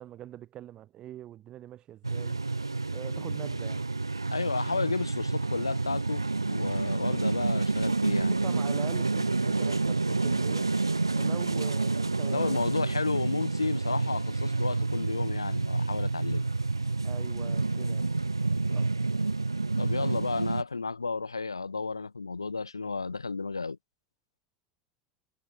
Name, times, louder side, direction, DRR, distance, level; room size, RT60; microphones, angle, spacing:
voice 1, 0.0-2.4 2.9-3.9 7.0-7.3 8.2-10.7 11.1-12.9 17.0-18.1 18.7-18.9 20.0-20.3, right 12 dB, 40° right, 6.7 m, -44 dB
sound 1, 2.0-20.6, right 3 dB, 90° right, 0.3 m, -29 dB
voice 2, 4.3-8.3 12.3-16.4 19.8-23.8, left 4 dB, 85° left, 0.5 m, -32 dB
figure-of-eight pair, 80°, 2 cm